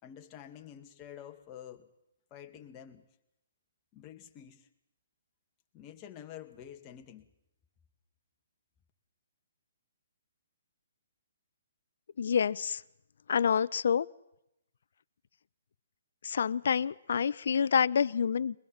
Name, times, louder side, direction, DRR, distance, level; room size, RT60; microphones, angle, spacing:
voice 1, 0.0-1.9 2.3-3.0 3.9-4.7 5.7-7.3, left 10 dB, 25° left, 4 dB, 2.1 m, -48 dB
voice 2, 12.2-12.8 13.3-14.1 16.2-18.6, left 7 dB, 65° left, 18 dB, 0.7 m, -27 dB
22.5 x 21.0 x 7.3 m, 0.86 s
hypercardioid pair, 145°, 0 cm